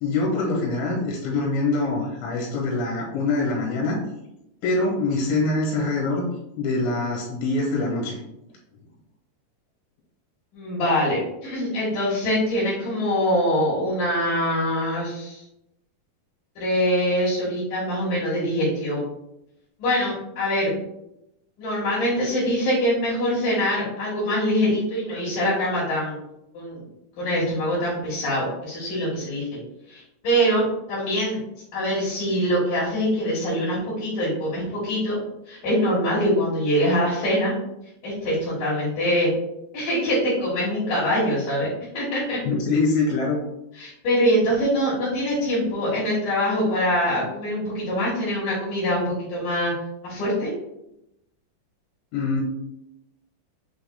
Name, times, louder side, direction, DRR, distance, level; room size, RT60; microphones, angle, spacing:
voice 1, 0.0-4.0 4.6-6.3 6.6-8.2 42.5-43.4 52.1-52.4, left 3 dB, 80° left, -3 dB, 3.3 m, -24 dB
voice 2, 10.5-15.4 16.6-19.0 19.8-20.7 21.6-26.2 26.5-26.8 27.2-29.5 29.9-30.6 30.9-31.4 31.7-35.2 35.5-37.5 38.0-39.3 39.7-41.7 41.9-42.4 43.7-49.7 50.0-50.5, equal, 60° left, -9 dB, 2.5 m, -24 dB
6.7 x 3.5 x 2.3 m, 0.85 s
omnidirectional pair, 5.1 m